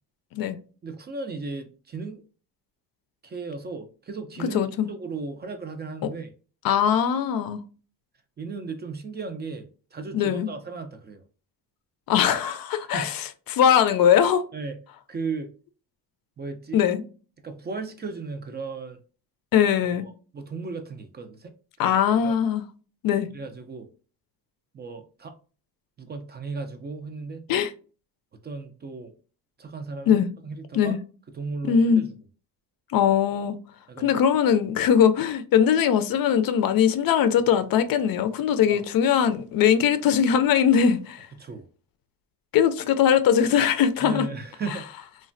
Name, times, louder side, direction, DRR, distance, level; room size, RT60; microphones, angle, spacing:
voice 1, 0.8-2.2 3.2-6.3 8.4-11.2 12.8-13.1 14.5-14.8 15.1-15.5 16.4-16.8 17.4-19.0 19.8-21.5 21.8-22.3 23.3-23.9 24.7-25.3 26.0-27.5 28.4-29.1 29.6-31.0 31.3-32.1 33.9-34.1 38.6-38.8 41.4-41.7 44.0-44.8, right 4 dB, 25° right, 0.3 m, -36 dB
voice 2, 4.4-4.9 6.6-7.6 10.1-10.5 12.1-13.2 13.5-14.4 16.7-17.0 19.5-20.1 21.8-22.6 23.0-23.3 27.5-27.7 30.1-30.3 30.7-31.0 31.6-32.0 32.9-33.6 34.0-41.3 42.5-44.3, left 8 dB, 60° left, 0.5 m, -21 dB
3.1 x 2.1 x 2.5 m
cardioid pair, 110°, 40 cm